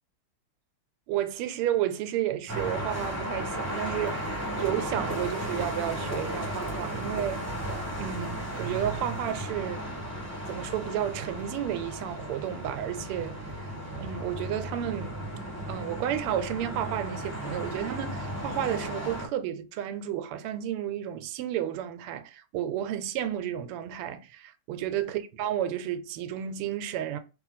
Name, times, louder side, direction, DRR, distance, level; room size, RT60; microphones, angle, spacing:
voice 1, 1.1-7.4 8.0-9.9 10.5-15.1 15.7-27.2, right 11 dB, 90° right, 1.5 m, -32 dB
sound 1, 2.5-19.3, equal, 10° right, 1.0 m, -35 dB
3.1 x 3.1 x 4.0 m
omnidirectional pair, 2.4 m